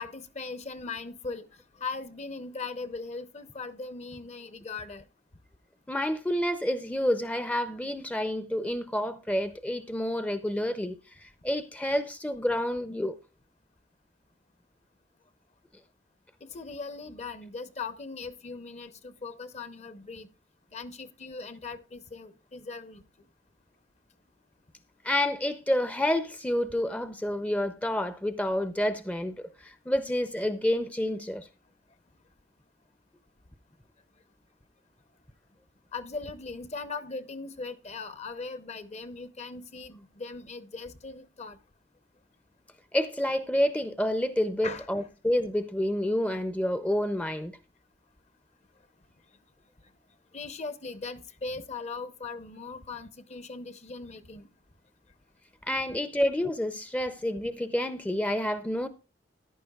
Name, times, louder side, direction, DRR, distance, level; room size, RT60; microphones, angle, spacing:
voice 1, 0.0-1.5 1.8-5.0 16.4-20.3 20.7-23.0 35.9-41.6 44.6-44.9 50.3-54.5, left 4 dB, 40° left, 0.7 m, -39 dB
voice 2, 5.9-13.2 25.0-31.5 42.9-47.5 55.7-58.9, left 1 dB, 10° left, 0.5 m, -29 dB
14.5 x 11.0 x 2.3 m
head